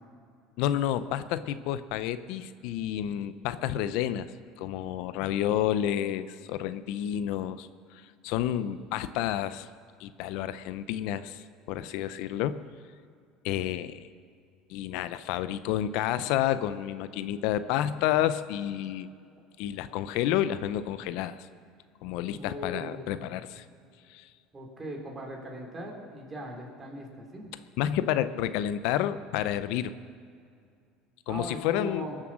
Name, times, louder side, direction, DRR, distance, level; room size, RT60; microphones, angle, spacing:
voice 1, 0.6-4.3 4.6-9.7 10.0-12.6 13.4-14.1 14.7-19.1 19.6-21.5 22.0-23.6 24.1-24.3 27.8-30.0 31.3-32.1, left 11 dB, 70° left, 14 dB, 0.5 m, -30 dB
voice 2, 22.3-23.4 24.5-27.5 31.3-32.2, equal, 20° right, 0 dB, 3.3 m, -39 dB
21.0 x 7.5 x 6.2 m, 2.3 s
supercardioid pair, 115°, 0 cm